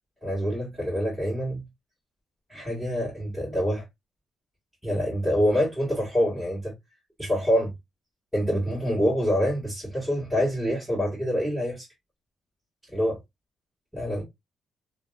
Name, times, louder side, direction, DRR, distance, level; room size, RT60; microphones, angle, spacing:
voice 1, 0.2-1.6 2.5-3.8 4.8-6.7 7.2-7.7 8.3-11.9 12.9-13.2 13.9-14.2, equal, 5° right, 1.7 m, -26 dB
2.9 x 2.8 x 2.3 m
cardioid pair, 90°, 0 cm